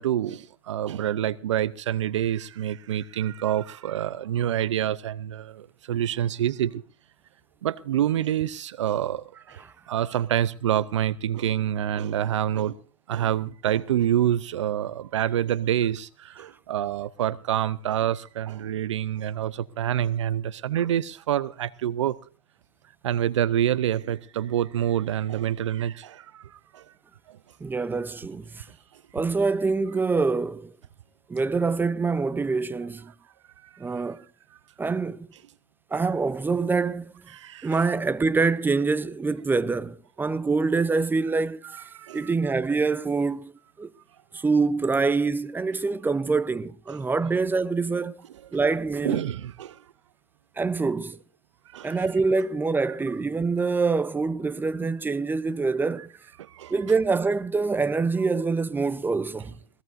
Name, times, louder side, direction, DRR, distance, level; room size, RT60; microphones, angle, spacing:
voice 1, 0.0-6.8 7.6-12.8 13.1-22.2 23.0-26.9 27.3-27.4 33.6-34.0 37.3-37.9 41.7-42.3 49.0-49.8 51.7-52.0 56.4-56.7, right 11 dB, 85° right, 0.6 m, -27 dB
voice 2, 27.6-28.6 29.1-30.7 31.3-33.1 33.8-34.2 34.8-35.3 35.9-37.1 37.6-41.6 42.1-43.5 43.8-43.9 44.3-48.2 48.5-49.2 50.6-51.2 51.8-56.1 56.7-59.5, right 4 dB, 15° right, 0.7 m, -25 dB
22.5 x 17.5 x 2.6 m
hypercardioid pair, 100°, 15 cm